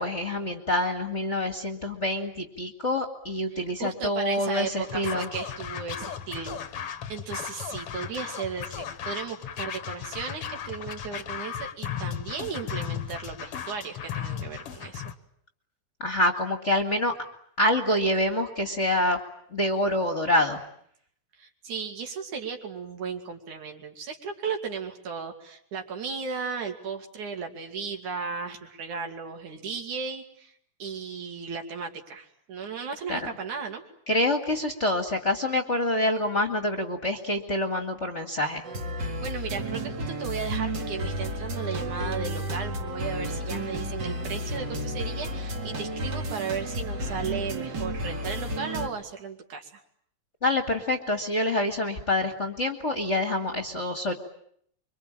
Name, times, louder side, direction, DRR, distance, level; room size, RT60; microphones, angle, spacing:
voice 1, 0.0-5.3 16.0-17.1 17.6-19.2 19.5-20.6 33.1-33.3 34.1-38.6 50.4-54.1, left 1 dB, 25° left, 5 dB, 1.8 m, -26 dB
voice 2, 3.5-15.0 21.4-30.5 30.8-33.8 39.0-49.8, right 5 dB, 75° right, 4 dB, 4.1 m, -35 dB
Scratching (performance technique), 4.8-15.2, left 8 dB, 55° left, 1.9 m, -36 dB
sound 1, 38.6-48.9, right 1 dB, 40° right, 2.4 m, -32 dB
25.5 x 24.5 x 8.9 m, 0.68 s
omnidirectional pair, 3.5 m